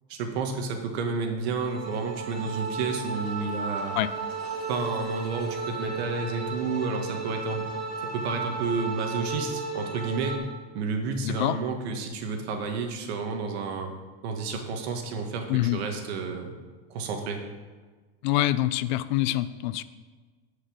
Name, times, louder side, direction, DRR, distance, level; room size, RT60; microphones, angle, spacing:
voice 1, 0.1-4.0 4.7-7.7 8.1-10.4 10.7-13.9 14.2-16.5 16.9-17.4, right 4 dB, 90° right, 4 dB, 1.8 m, -31 dB
sound 1, 1.5-10.4, right 4 dB, 25° right, 3.2 m, -34 dB
voice 2, 11.2-11.6 15.5-15.8 18.2-19.8, left 15 dB, 50° left, 15 dB, 0.4 m, -25 dB
9.9 x 5.6 x 7.3 m, 1.4 s
supercardioid pair, 175°, 31 cm